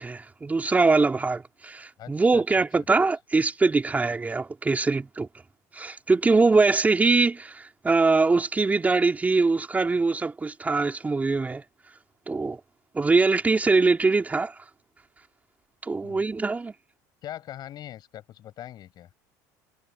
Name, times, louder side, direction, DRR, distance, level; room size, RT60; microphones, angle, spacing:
voice 1, 0.0-5.3 5.7-11.6 12.3-12.6 12.9-14.5 15.8-16.7, right 3 dB, 15° right, 3.5 m, -23 dB
voice 2, 2.0-2.6 16.0-16.2 17.2-19.1, left 12 dB, 50° left, 7.4 m, -41 dB
supercardioid pair, 105°, 9 cm